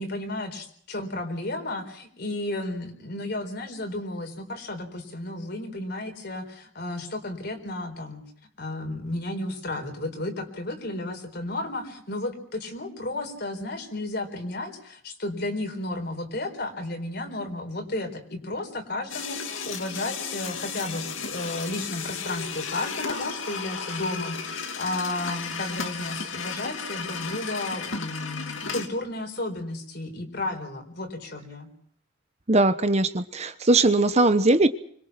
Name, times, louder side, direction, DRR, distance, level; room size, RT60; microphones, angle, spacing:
voice 1, 0.0-8.2 8.6-31.7, left 2 dB, 55° left, 5 dB, 4.4 m, -33 dB
sound 1, 19.1-28.9, left 5 dB, 80° left, 2.5 m, -34 dB
voice 2, 32.5-34.7, right 2 dB, 35° right, 11 dB, 0.9 m, -20 dB
25.5 x 21.5 x 6.0 m, 0.62 s
head